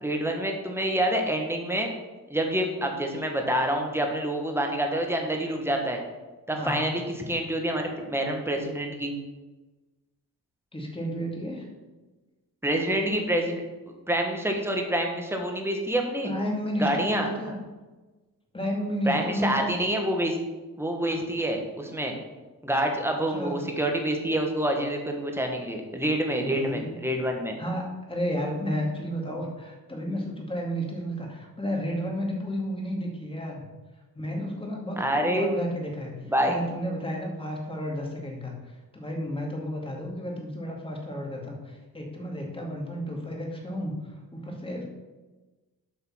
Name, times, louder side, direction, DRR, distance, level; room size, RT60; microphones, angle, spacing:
voice 1, 0.0-1.9 2.3-6.0 6.5-9.1 12.6-13.6 14.1-16.3 16.8-17.5 19.1-20.4 20.8-22.1 22.6-27.6 35.0-35.5 36.3-36.6, right 1 dB, 5° right, 2 dB, 1.5 m, -27 dB
voice 2, 6.5-6.9 10.7-11.7 16.2-17.6 18.5-19.8 23.3-23.6 26.4-27.0 27.6-33.6 34.1-44.9, equal, 15° left, 0 dB, 2.2 m, -32 dB
8.1 x 5.6 x 5.7 m, 1.2 s
cardioid pair, 105°, 37 cm